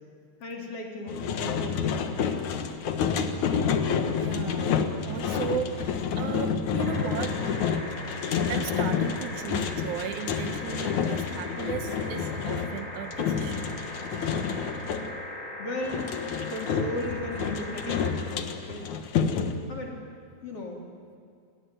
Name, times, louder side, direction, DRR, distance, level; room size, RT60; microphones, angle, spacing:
voice 1, 0.4-2.5 15.6-16.1 16.5-18.2 18.5-18.8 19.7-20.0 20.4-20.8, left 2 dB, 50° left, 1 dB, 4.4 m, -35 dB
sound 1, 1.1-15.1 15.8-19.5, left 6 dB, 85° left, 2.8 m, -29 dB
voice 2, 4.2-4.8 5.1-7.4 8.4-13.7, right 10 dB, 85° right, 9 dB, 2.3 m, -36 dB
sound 2, 6.8-18.1 19.5-19.6, left 1 dB, 10° left, 6.0 m, -39 dB
28.0 x 19.5 x 9.3 m, 2.4 s
omnidirectional pair, 3.3 m